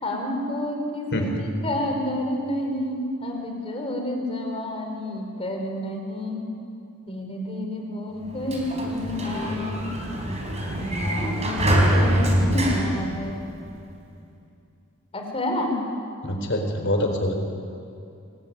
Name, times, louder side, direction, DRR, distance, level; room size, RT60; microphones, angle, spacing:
voice 1, 0.0-6.5 7.1-9.9 10.6-13.4 15.1-15.8, left 1 dB, 25° left, 2 dB, 4.1 m, -29 dB
voice 2, 1.1-1.4 16.2-17.3, left 1 dB, 55° left, 3 dB, 4.3 m, -25 dB
Sliding door, 8.2-13.8, equal, 30° right, 4.2 m, -25 dB
24.5 x 20.0 x 9.3 m, 2.6 s
head